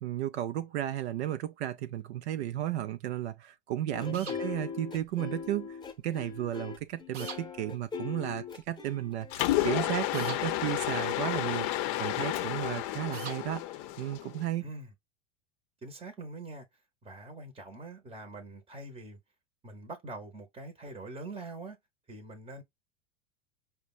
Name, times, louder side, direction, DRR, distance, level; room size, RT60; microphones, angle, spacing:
voice 1, 0.0-5.8 6.0-13.6 14.0-14.7, right 12 dB, 70° right, 0.5 m, -34 dB
sound 1, 3.9-9.7, left 6 dB, 10° left, 0.9 m, -40 dB
voice 2, 4.1-4.4 14.6-14.9 15.8-16.7 17.0-19.2 19.6-21.8 22.1-22.6, right 2 dB, 15° right, 0.9 m, -44 dB
sound 2, 4.1-4.4 7.1-7.4 10.1-10.4 13.1-13.4, right 6 dB, 85° right, 0.9 m, -41 dB
Mechanisms, 9.3-14.4, left 15 dB, 45° left, 0.6 m, -31 dB
5.1 x 2.2 x 2.3 m
hypercardioid pair, 100°, 35 cm